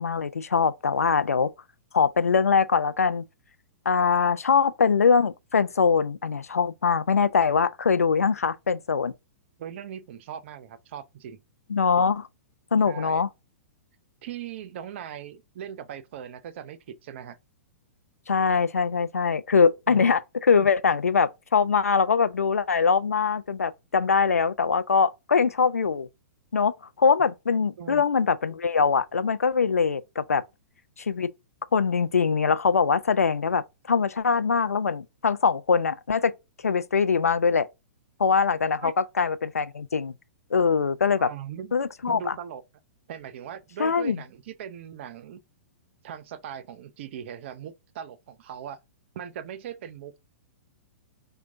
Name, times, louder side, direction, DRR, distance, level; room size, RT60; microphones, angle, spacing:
voice 1, 0.0-1.5 1.9-3.3 3.9-9.1 11.7-12.3 12.7-13.3 18.3-26.1 26.5-26.7 27.0-30.4 31.0-31.3 31.7-36.3 36.6-37.7 38.2-40.1 40.5-41.3 41.7-42.3 43.8-44.2, left 5 dB, 85° left, 0.4 m, -23 dB
voice 2, 9.6-11.4 12.8-13.2 14.2-17.4 19.9-20.1 27.8-28.0 38.8-38.9 41.2-41.7 42.1-42.6 43.1-45.4 46.0-48.8 49.1-50.2, right 9 dB, 50° right, 0.5 m, -39 dB
4.5 x 2.2 x 2.5 m
figure-of-eight pair, 110°, 8 cm